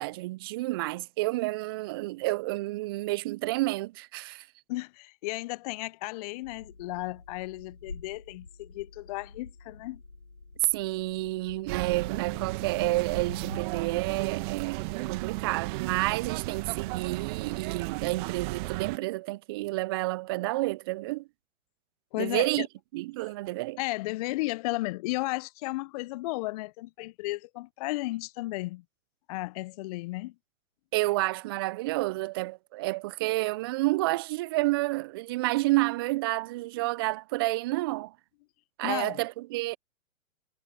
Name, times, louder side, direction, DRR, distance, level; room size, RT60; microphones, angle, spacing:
voice 1, 0.0-4.5 10.7-21.3 22.2-22.7 22.9-23.8 30.9-38.1 38.8-39.8, right 20 dB, 20° right, 0.4 m, -30 dB
voice 2, 4.7-10.0 22.1-22.7 23.8-28.8 29.3-30.3 38.8-39.2, left 21 dB, 30° left, 0.6 m, -34 dB
sound 1, 6.4-14.5, left 3 dB, 90° left, 5.1 m, -48 dB
sound 2, 11.7-19.0, right 23 dB, 35° right, 1.9 m, -34 dB
figure-of-eight pair, 120°, 42 cm